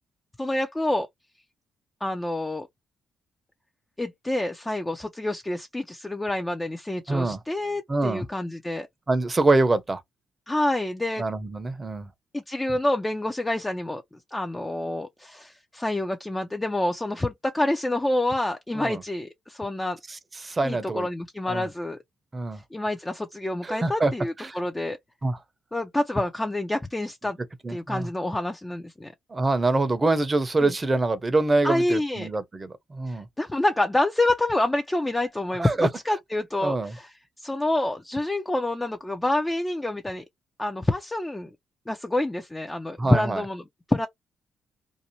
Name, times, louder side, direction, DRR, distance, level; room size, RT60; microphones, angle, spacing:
voice 1, 0.4-1.1 2.0-2.7 4.0-8.9 10.5-11.2 12.3-14.0 14.3-20.0 20.6-22.0 22.7-25.0 25.7-27.4 27.7-29.1 30.6-30.7 31.6-32.3 33.1-40.2 40.6-41.5 41.9-43.6 43.9-44.1, left 1 dB, 15° left, 0.5 m, -27 dB
voice 2, 7.1-7.4 7.9-8.2 9.1-10.0 11.2-12.1 18.7-19.0 20.1-21.1 21.5-21.7 22.3-22.6 23.6-24.1 24.4-24.6 25.2-25.4 27.6-28.1 29.3-33.3 35.6-35.9 36.6-36.9 43.0-43.4, right 2 dB, 25° right, 0.7 m, -25 dB
2.6 x 2.1 x 2.9 m
cardioid pair, 90°, 0 cm